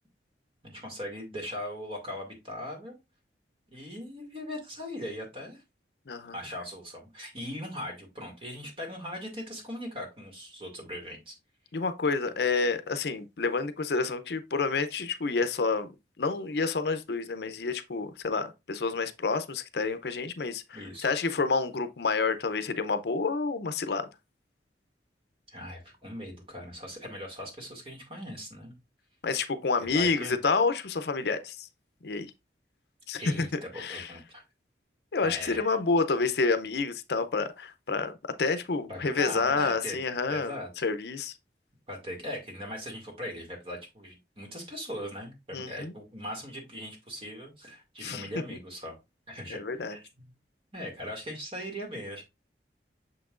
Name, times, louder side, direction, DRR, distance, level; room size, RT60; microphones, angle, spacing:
voice 1, 0.6-3.0 3.7-5.6 6.3-11.4 20.7-21.1 25.5-28.7 29.9-30.4 33.2-34.4 35.2-35.7 38.9-40.0 40.3-40.7 41.9-49.0 49.3-49.6 49.9-50.0 50.7-52.2, equal, 35° right, 2.1 m, -39 dB
voice 2, 11.7-15.9 16.2-24.1 29.2-31.7 32.0-32.3 33.1-33.5 33.8-34.1 35.1-40.6 40.8-41.3 45.5-45.9 48.0-48.3 49.5-50.0, left 4 dB, 65° left, 0.6 m, -29 dB
6.6 x 5.8 x 2.4 m
head